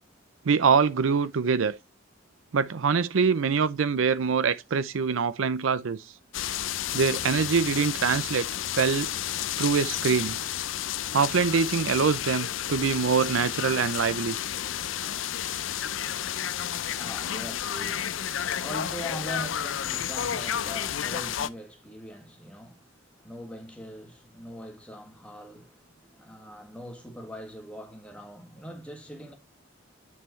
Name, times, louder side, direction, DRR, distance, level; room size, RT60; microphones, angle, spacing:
voice 1, 0.5-1.8 2.5-6.0 6.9-8.5 8.8-9.1 9.6-10.4 11.1-14.4, right 5 dB, 90° right, 0.5 m, -24 dB
sound 1, 6.3-21.5, left 10 dB, 80° left, 0.5 m, -31 dB
voice 2, 16.5-29.3, equal, 5° left, 1.9 m, -42 dB
9.3 x 5.6 x 3.1 m
head